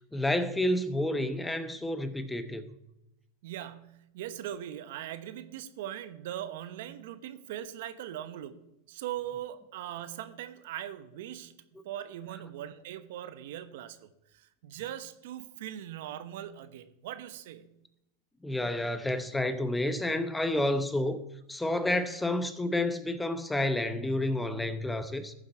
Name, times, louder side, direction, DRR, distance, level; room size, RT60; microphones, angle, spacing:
voice 1, 0.1-2.7 18.4-21.2 21.5-25.3, left 1 dB, 10° left, 0.9 m, -30 dB
voice 2, 3.4-8.6 8.9-11.5 11.8-17.7, right 11 dB, 70° right, 0.9 m, -40 dB
14.0 x 7.5 x 4.4 m
hypercardioid pair, 105°, 0 cm